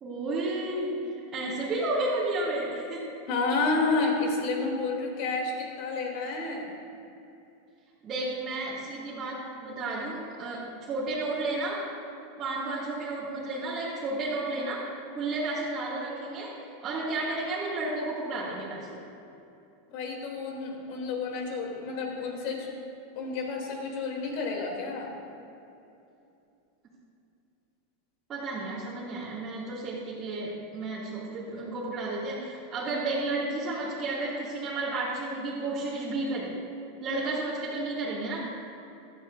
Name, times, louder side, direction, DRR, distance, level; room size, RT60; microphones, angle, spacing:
voice 1, 0.0-1.0 1.3-3.1 8.0-11.8 12.4-14.9 15.2-16.5 16.8-18.9 28.3-36.6 37.0-38.5, right 2 dB, 25° right, -11 dB, 2.5 m, -32 dB
voice 2, 3.3-6.7 19.9-22.7 23.1-25.1, left 3 dB, 60° left, 0 dB, 2.9 m, -30 dB
16.5 x 12.5 x 2.6 m, 2.8 s
supercardioid pair, 145°, 0 cm